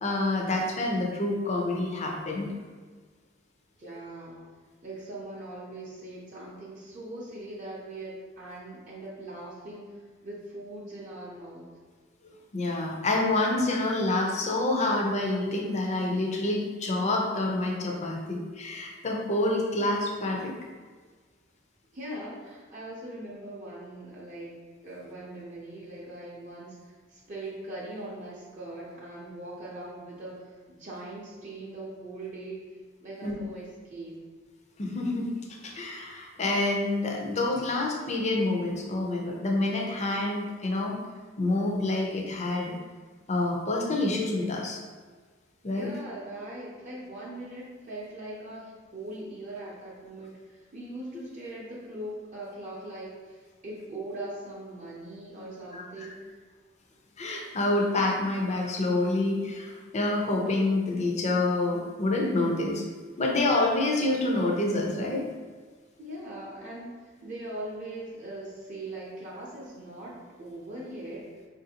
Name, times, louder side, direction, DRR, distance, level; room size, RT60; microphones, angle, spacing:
voice 1, 0.0-2.5 12.5-20.5 33.2-33.3 34.8-35.3 35.6-41.0 41.4-42.7 43.3-44.8 45.6-45.9 55.7-55.8 57.2-62.9 63.2-65.3, left 2 dB, 35° left, 0 dB, 0.5 m, -27 dB
voice 2, 3.8-4.4 4.8-9.9 10.2-11.7 21.9-32.6 33.0-34.2 45.7-56.4 66.0-71.3, right 1 dB, 40° right, -5 dB, 0.6 m, -41 dB
4.6 x 2.5 x 2.8 m, 1.5 s
head